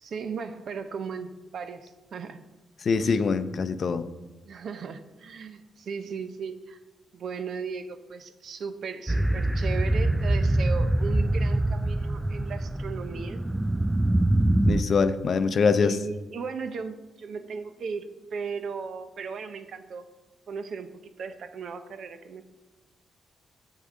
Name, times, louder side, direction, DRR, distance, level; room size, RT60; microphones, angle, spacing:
voice 1, 0.0-2.4 3.0-3.2 4.5-6.8 7.1-13.4 15.7-20.1 20.5-22.5, right 5 dB, 65° right, 10 dB, 0.7 m, -37 dB
voice 2, 2.8-4.0 14.7-16.0, left 5 dB, 55° left, 12 dB, 0.5 m, -24 dB
sound 1, 9.1-14.8, right 1 dB, 10° right, 0.3 m, -24 dB
7.8 x 7.5 x 3.7 m, 1.2 s
cardioid pair, 75°, 0 cm